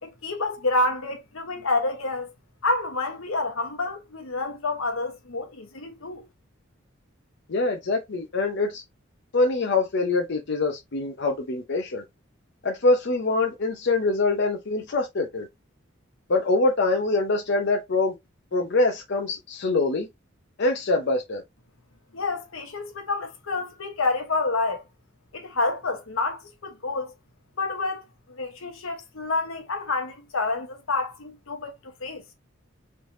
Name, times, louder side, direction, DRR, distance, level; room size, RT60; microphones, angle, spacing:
voice 1, 0.0-2.3 2.6-6.3 22.1-24.8 25.3-27.1 27.6-32.2, left 3 dB, 85° left, 1.0 m, -28 dB
voice 2, 7.5-8.8 9.3-12.0 12.6-15.5 16.3-18.1 18.5-20.1 20.6-21.4, left 3 dB, 60° left, 0.6 m, -24 dB
3.3 x 3.1 x 2.6 m
head